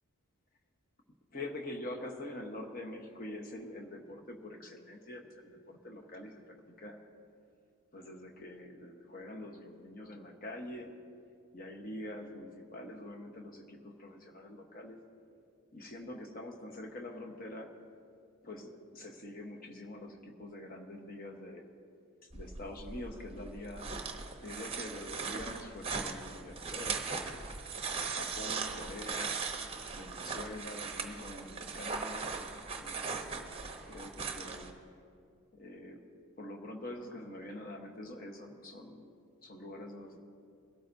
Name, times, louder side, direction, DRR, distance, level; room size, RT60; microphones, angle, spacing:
voice 1, 1.3-7.0 7.9-10.9 11.5-15.0 15.7-17.7 18.4-21.6 22.3-23.9 24.4-27.0 27.9-29.4 30.0-32.3 32.8-33.6 33.9-34.8 35.5-36.1 36.4-39.1 39.4-40.2, left 1 dB, 40° left, 2 dB, 1.1 m, -45 dB
sound 1, 22.3-34.7, right 5 dB, 25° right, 0.8 m, -39 dB
22.5 x 12.5 x 2.7 m, 2.4 s
head